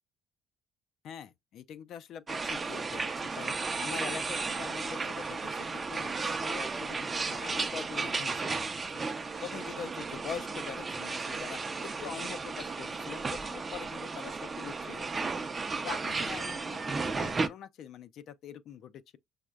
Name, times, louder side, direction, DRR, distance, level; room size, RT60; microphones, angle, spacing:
voice 1, 1.0-15.4 15.8-19.2, left 8 dB, 60° left, 0.4 m, -44 dB
sound 1, 2.3-17.5, right 4 dB, 30° right, 0.5 m, -34 dB
6.1 x 2.0 x 2.3 m
hypercardioid pair, 65°, 0 cm